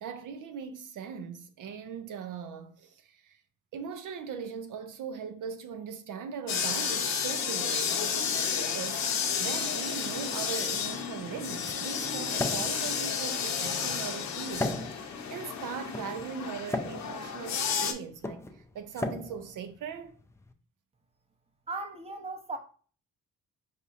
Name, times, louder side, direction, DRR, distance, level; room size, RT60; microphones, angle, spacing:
voice 1, 0.0-3.4 3.7-9.0 9.4-20.2, right 7 dB, 75° right, 0.6 m, -40 dB
sound 1, 6.5-17.9, left 6 dB, 60° left, 0.7 m, -32 dB
sound 2, 10.7-20.5, left 2 dB, 10° left, 0.3 m, -38 dB
voice 2, 21.7-22.6, right 3 dB, 20° right, 0.7 m, -37 dB
4.9 x 2.6 x 2.5 m
cardioid pair, 75°, 31 cm